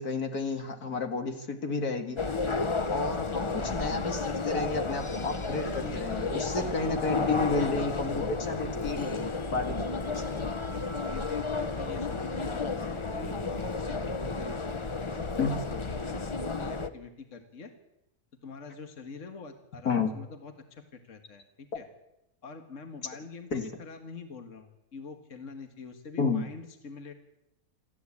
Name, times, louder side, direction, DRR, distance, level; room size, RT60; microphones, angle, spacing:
voice 1, 0.0-2.2 2.9-9.1 9.5-10.4 15.4-15.5 19.8-20.1 23.5-23.6 26.2-26.5, left 4 dB, 70° left, 6 dB, 2.5 m, -31 dB
sound 1, 2.2-16.9, left 4 dB, 25° left, 0.7 m, -32 dB
voice 2, 5.6-7.8 10.2-15.5 15.9-17.7 18.4-21.9 22.4-27.1, left 4 dB, 50° left, 6 dB, 2.0 m, -45 dB
27.5 x 13.5 x 8.6 m, 0.88 s
omnidirectional pair, 1.7 m